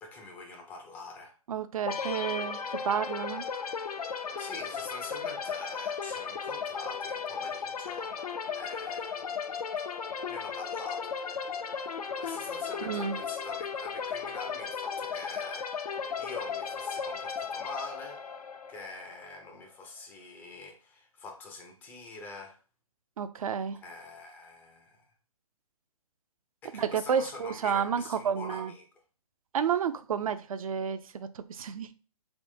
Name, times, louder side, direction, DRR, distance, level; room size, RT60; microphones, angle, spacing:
voice 1, 0.0-1.3 4.4-8.2 8.5-9.4 9.9-10.0 10.3-11.2 12.2-15.9 16.2-18.2 18.7-22.6 23.8-25.1 26.6-28.9, left 3 dB, 10° left, 0.3 m, -45 dB
voice 2, 1.5-3.4 12.8-13.2 23.2-23.8 26.7-28.7 29.5-31.9, right 7 dB, 65° right, 0.4 m, -31 dB
sound 1, 1.9-19.5, left 6 dB, 80° left, 0.5 m, -36 dB
3.6 x 2.9 x 2.5 m
hypercardioid pair, 135°, 19 cm